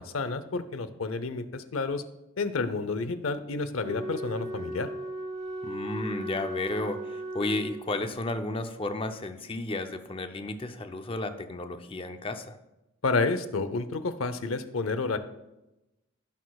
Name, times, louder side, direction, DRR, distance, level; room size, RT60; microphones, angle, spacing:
voice 1, 0.0-2.0 2.4-4.9 13.0-15.2, left 3 dB, 85° left, 11 dB, 0.7 m, -30 dB
Wind instrument woodwind instrument, 3.8-8.2, right 1 dB, 35° right, 1.1 m, -37 dB
voice 2, 5.6-12.5, left 2 dB, 25° left, 7 dB, 0.6 m, -33 dB
15.0 x 6.4 x 2.3 m, 0.95 s
head